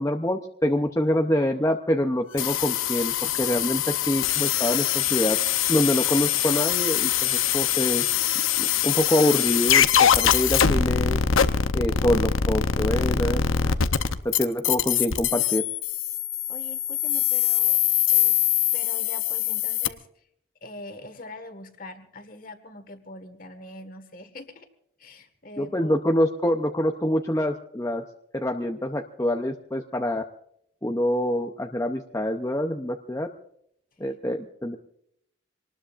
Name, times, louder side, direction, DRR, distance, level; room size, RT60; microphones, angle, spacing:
voice 1, 0.0-5.4 5.7-8.0 8.6-11.2 11.7-13.7 14.2-15.6 25.6-28.0 28.3-30.2 30.8-33.3 34.0-34.8, left 1 dB, 15° left, 4 dB, 0.6 m, -25 dB
sound 1, 2.4-19.9, left 9 dB, 90° left, 0.8 m, -23 dB
voice 2, 16.5-17.8 18.1-18.4 18.7-20.2 20.6-24.7 25.0-26.0, left 2 dB, 45° left, 9 dB, 1.6 m, -43 dB
25.5 x 19.5 x 2.5 m, 0.72 s
head